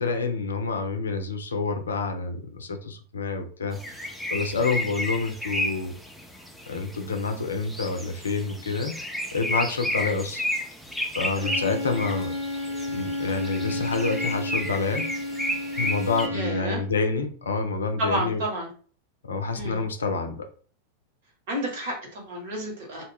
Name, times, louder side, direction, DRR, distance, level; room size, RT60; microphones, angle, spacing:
voice 1, 0.0-5.9 6.7-9.0 9.3-10.5 11.1-12.3 12.9-15.1 15.8-18.4 19.2-20.5, left 4 dB, 70° left, 6 dB, 0.5 m, -28 dB
sound 1, 3.7-16.3, equal, ahead, 0.5 m, -32 dB
Bowed string instrument, 11.4-16.8, left 2 dB, 85° right, 0.8 m, -32 dB
voice 2, 16.3-16.8 18.0-18.7 19.5-19.8 21.5-23.0, equal, 55° right, 0 dB, 1.2 m, -30 dB
2.4 x 2.2 x 3.3 m, 0.42 s
figure-of-eight pair, 90°, 0 cm